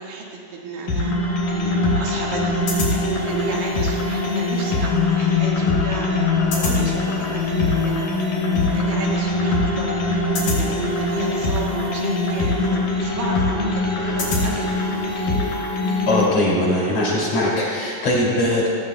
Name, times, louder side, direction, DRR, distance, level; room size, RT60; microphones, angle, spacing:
voice 1, 0.0-2.7 3.0-8.1 8.6-14.7, right 3 dB, 85° right, -3 dB, 3.5 m, -32 dB
sound 1, 0.9-16.3, left 2 dB, 75° left, 5.0 m, -22 dB
voice 2, 16.1-18.7, left 1 dB, 45° left, -6 dB, 3.7 m, -20 dB
18.0 x 15.5 x 2.2 m, 2.3 s
omnidirectional pair, 3.9 m